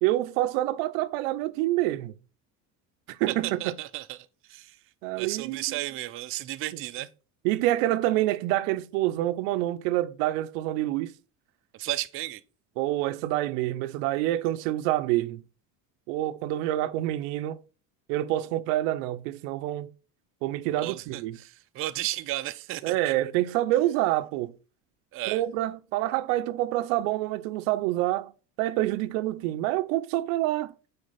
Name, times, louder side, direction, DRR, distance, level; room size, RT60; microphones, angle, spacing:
voice 1, 0.0-2.1 3.1-3.7 5.0-5.6 7.4-11.1 12.8-15.4 16.1-17.6 18.1-19.9 20.4-21.4 22.8-24.5 25.3-28.3 28.6-30.7, right 15 dB, 85° right, 0.6 m, -27 dB
voice 2, 3.3-4.2 4.5-4.8 5.2-7.1 11.7-12.4 20.8-23.1 25.1-25.4, right 16 dB, 35° right, 0.4 m, -33 dB
6.5 x 4.3 x 4.1 m
cardioid pair, 120°, 38 cm